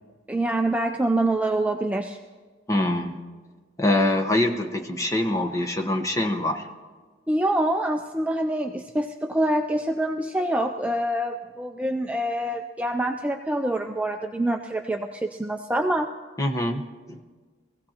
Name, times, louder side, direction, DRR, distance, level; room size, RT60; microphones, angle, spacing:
voice 1, 0.3-2.2 7.3-16.1, right 1 dB, 5° right, 4 dB, 0.4 m, -25 dB
voice 2, 2.7-3.2 3.8-6.7 16.4-17.2, left 1 dB, 15° left, 3 dB, 1.0 m, -24 dB
22.5 x 16.0 x 2.9 m, 1.4 s
head